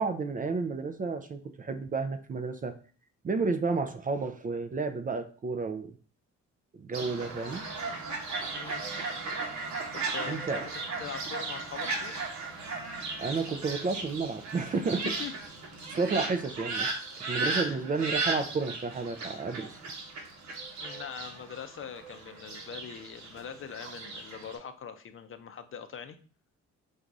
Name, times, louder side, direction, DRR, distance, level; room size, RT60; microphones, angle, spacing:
voice 1, 0.0-2.7 3.2-5.9 6.7-7.7 10.3-10.6 13.2-15.2 15.9-19.8, right 4 dB, 30° right, 9 dB, 0.4 m, -31 dB
Fowl, 6.9-24.6, right 3 dB, 65° right, 1.1 m, -36 dB
voice 2, 8.5-8.8 9.9-12.3 15.0-15.3 17.6-17.8 20.8-26.2, left 7 dB, 45° left, 9 dB, 0.5 m, -42 dB
4.0 x 2.6 x 4.6 m, 0.41 s
cardioid pair, 90°, 30 cm